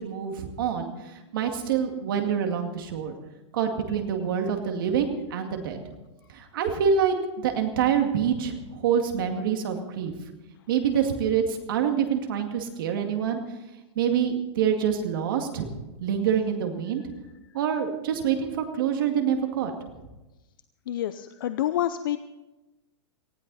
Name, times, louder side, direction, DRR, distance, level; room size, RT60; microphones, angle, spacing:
voice 1, 0.0-3.2 3.5-5.8 6.3-10.1 10.7-13.4 14.0-15.7 16.0-17.0 17.5-19.7, right 7 dB, 45° right, 4 dB, 2.2 m, -26 dB
voice 2, 20.9-22.2, left 12 dB, 45° left, 12 dB, 0.5 m, -28 dB
19.0 x 15.5 x 4.1 m, 1.1 s
supercardioid pair, 180°, 15 cm